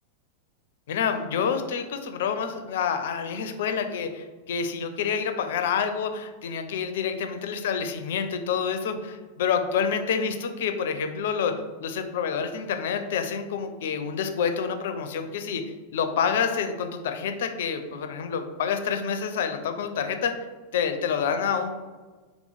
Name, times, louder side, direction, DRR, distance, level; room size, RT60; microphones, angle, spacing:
voice 1, 0.9-11.5 11.8-15.6 15.9-20.4 20.7-21.7, left 6 dB, 60° left, 7 dB, 0.4 m, -28 dB
3.5 x 3.0 x 3.9 m, 1.3 s
figure-of-eight pair, 90°, 0 cm